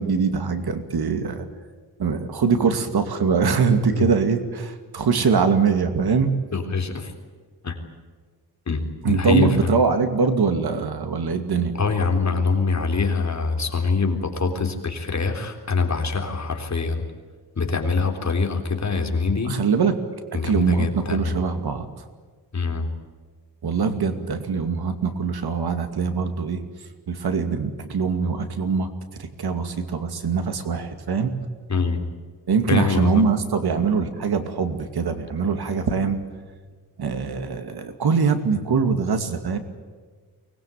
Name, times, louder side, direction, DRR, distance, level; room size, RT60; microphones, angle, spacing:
voice 1, 0.0-1.5 2.0-6.3 9.0-11.7 19.5-19.9 20.4-21.9 23.6-26.6 27.1-28.9 29.2-31.3 32.5-36.2 37.0-39.6, right 5 dB, 70° right, 8 dB, 2.5 m, -23 dB
voice 2, 6.5-7.1 7.6-7.8 8.7-9.6 11.7-17.1 17.6-19.6 20.3-21.4 22.5-22.9 31.7-32.0 32.7-33.2, left 4 dB, 45° left, 3 dB, 3.7 m, -24 dB
24.0 x 20.5 x 9.1 m, 1.5 s
wide cardioid pair, 120°, 40 cm